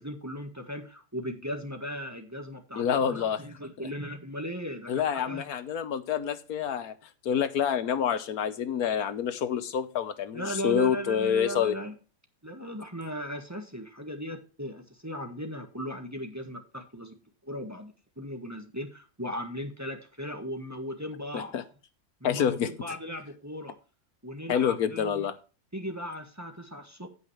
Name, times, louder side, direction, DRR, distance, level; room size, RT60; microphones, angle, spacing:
voice 1, 0.0-5.5 10.3-11.9 12.4-17.1 17.4-21.5 22.2-23.8 24.2-25.3 25.7-27.1, equal, 10° right, 4 dB, 1.4 m, -37 dB
voice 2, 2.8-3.4 4.9-6.9 7.2-11.7 21.3-21.6 22.2-22.7 24.5-25.3, left 8 dB, 80° left, 12 dB, 1.4 m, -27 dB
16.0 x 5.6 x 3.2 m, 0.34 s
omnidirectional pair, 1.6 m